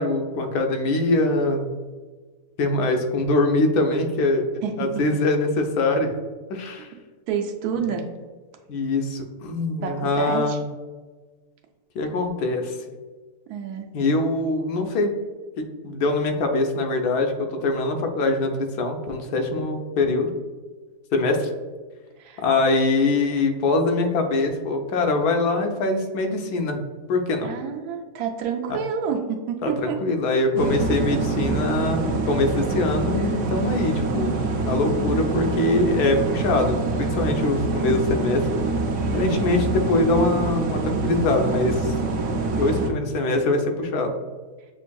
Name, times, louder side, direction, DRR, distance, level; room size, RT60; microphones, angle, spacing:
voice 1, 0.0-1.7 2.6-4.4 4.8-6.1 6.5-6.9 7.8-7.9 8.7-10.6 11.9-12.7 13.9-15.1 15.6-20.3 21.1-21.5 22.4-26.8 27.1-27.5 28.7-28.8 29.6-38.4 39.1-41.9 42.5-44.2, left 2 dB, 90° left, 4 dB, 1.2 m, -23 dB
voice 2, 7.3-8.0 9.8-10.6 13.5-13.9 22.2-22.4 27.4-30.0, right 7 dB, 85° right, 3 dB, 1.1 m, -28 dB
sound 1, 30.6-42.9, right 3 dB, 70° right, 0.8 m, -25 dB
7.0 x 2.6 x 2.2 m, 1.4 s
omnidirectional pair, 1.6 m